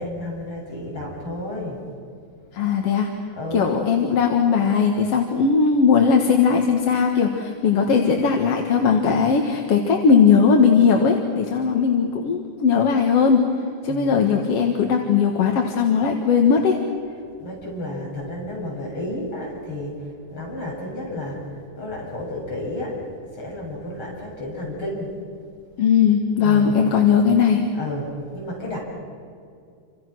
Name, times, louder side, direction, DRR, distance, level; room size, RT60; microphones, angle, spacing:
voice 1, 0.0-1.8 3.3-3.7 13.9-14.4 17.4-20.0 20.3-21.5 21.7-22.9 23.4-25.1 26.4-26.8 27.8-28.8, left 1 dB, 40° left, -3 dB, 8.6 m, -31 dB
voice 2, 2.5-3.1 3.5-13.4 13.8-16.8 25.8-27.6, left 6 dB, 55° left, 3 dB, 2.4 m, -18 dB
29.0 x 26.0 x 6.3 m, 2.4 s
omnidirectional pair, 3.6 m